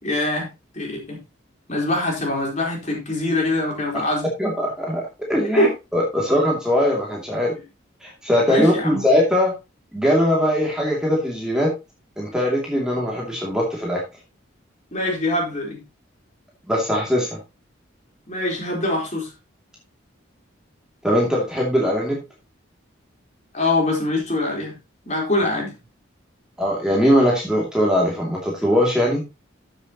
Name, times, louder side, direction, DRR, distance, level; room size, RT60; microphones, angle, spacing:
voice 1, 0.0-1.2 1.7-4.3 5.6-5.7 8.5-9.0 14.9-15.8 18.3-19.3 23.5-24.8 25.1-25.7, left 1 dB, 35° left, -1 dB, 4.2 m, -23 dB
voice 2, 4.4-5.0 5.3-7.5 8.0-9.5 9.9-11.7 12.2-14.0 16.7-17.4 21.0-22.2 26.6-29.2, equal, 5° right, -3 dB, 2.6 m, -20 dB
13.5 x 7.1 x 3.0 m, 0.26 s
head